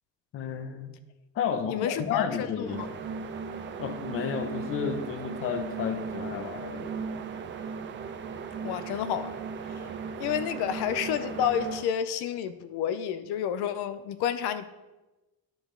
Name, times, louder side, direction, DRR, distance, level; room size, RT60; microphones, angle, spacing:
voice 1, 0.3-0.9 1.3-3.0 3.8-7.1, left 7 dB, 35° left, 8 dB, 0.6 m, -32 dB
voice 2, 1.7-2.9 8.6-9.3 9.7-9.9 10.2-14.7, left 9 dB, 80° left, 12 dB, 0.6 m, -30 dB
sound 1, 2.6-11.9, right 5 dB, 30° right, 0.4 m, -37 dB
10.5 x 5.0 x 3.7 m, 1.1 s
cardioid pair, 175°, 39 cm